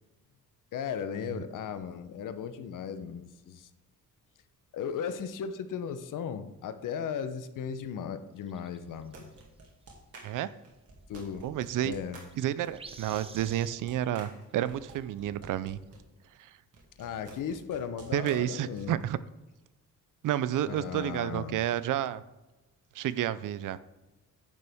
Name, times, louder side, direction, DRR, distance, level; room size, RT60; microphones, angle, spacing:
voice 1, 0.7-3.7 4.7-9.2 11.1-11.5 11.8-12.2 17.0-18.9 20.6-21.6, left 7 dB, 65° left, 11 dB, 0.8 m, -36 dB
sound 1, 8.4-9.4 11.9-12.0 12.2-13.8 14.8-14.9 15.2-15.3, right 4 dB, 15° right, 0.5 m, -49 dB
sound 2, 8.9-16.0 16.7-19.0, right 2 dB, 45° right, 2.1 m, -51 dB
voice 2, 11.4-11.9 12.4-15.8 16.4-16.5 18.1-19.2 20.2-22.2 22.9-23.8, right 12 dB, 65° right, 16 dB, 0.5 m, -30 dB
10.0 x 6.8 x 3.5 m, 1.1 s
cardioid pair, 160°, 34 cm